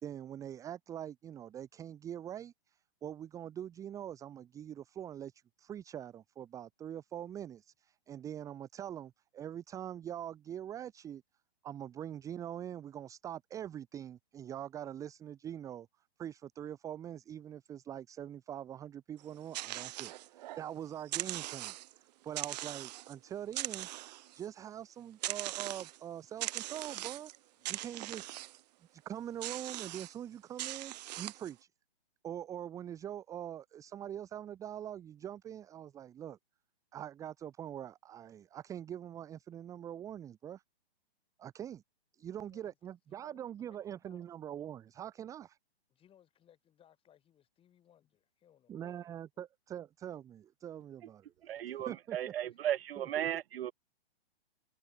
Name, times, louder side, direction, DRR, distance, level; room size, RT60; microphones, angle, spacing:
voice 1, 0.0-11.2 11.6-15.9 16.2-23.9 24.3-27.3 27.7-28.3 28.9-31.7 32.2-36.4 36.9-40.6 41.4-41.8 42.1-45.6 48.7-51.3 51.9-52.2 53.0-53.3, right 10 dB, 10° right, 0.7 m, -43 dB
sound 1, 19.2-20.7 21.0-22.0 22.4-23.1 23.5-24.5 25.2-26.0 26.4-27.4 27.7-28.6 29.4-30.1 30.6-31.5, right 16 dB, 40° right, 1.4 m, -40 dB
voice 2, 27.6-28.2 42.3-42.8 43.1-44.3 45.9-49.1 51.9-52.0, left 10 dB, 15° left, 7.3 m, -66 dB
voice 3, 51.5-53.7, right 11 dB, 70° right, 0.5 m, -35 dB
hypercardioid pair, 140°, 31 cm